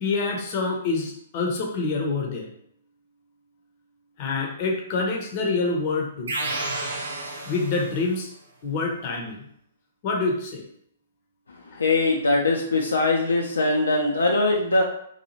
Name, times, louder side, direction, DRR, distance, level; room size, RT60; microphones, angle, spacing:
voice 1, 0.0-2.5 4.2-6.4 7.5-8.3 8.6-9.5 10.0-10.6 11.7-11.8, left 3 dB, 40° left, 1 dB, 0.6 m, -26 dB
sound 1, 6.3-8.2, right 2 dB, 70° right, 0.6 m, -31 dB
voice 2, 11.5-14.8, left 2 dB, 75° left, 0 dB, 0.4 m, -22 dB
2.7 x 2.3 x 2.9 m, 0.70 s
figure-of-eight pair, 120°, 0 cm